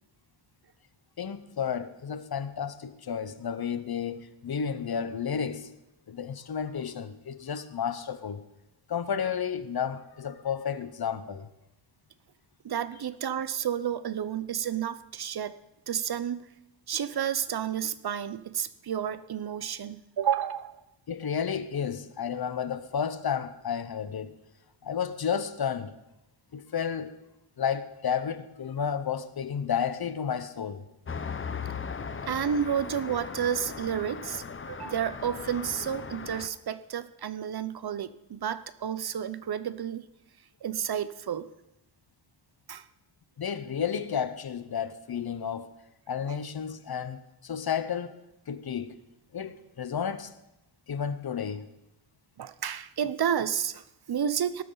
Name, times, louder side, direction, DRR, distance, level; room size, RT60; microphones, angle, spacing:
voice 1, 1.2-5.7 6.1-8.4 8.9-11.5 21.1-24.3 24.8-25.9 26.5-27.1 27.6-30.8 43.4-45.7 46.1-48.2 48.5-49.0 49.3-50.3 50.9-51.7, left 7 dB, 50° left, 0.9 m, -32 dB
voice 2, 12.6-15.5 15.9-16.5 16.9-20.8 32.3-40.1 40.6-41.5 42.7-42.9 52.4-54.6, right 8 dB, 50° right, 0.7 m, -31 dB
Traffic noise roadway noise, 31.1-36.5, left 5 dB, 25° left, 0.6 m, -38 dB
18.5 x 12.5 x 3.9 m
wide cardioid pair, 110°, 48 cm